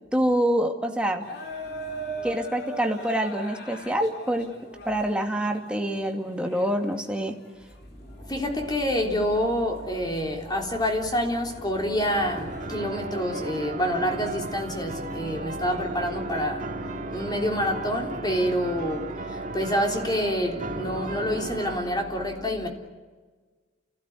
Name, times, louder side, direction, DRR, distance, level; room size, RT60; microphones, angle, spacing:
voice 1, 0.1-1.2 2.2-4.5 4.8-7.4, right 1 dB, 5° right, 2.3 m, -26 dB
sound 1, 1.2-7.8 8.2-9.6 9.9-10.3 10.8-10.9 11.4-12.7, right 1 dB, 60° left, 4.2 m, -39 dB
voice 2, 1.6-2.3 7.9-22.7, equal, 25° left, 3.6 m, -27 dB
sound 2, 12.1-21.8, right 3 dB, 45° right, 2.2 m, -36 dB
29.5 x 16.5 x 9.6 m
head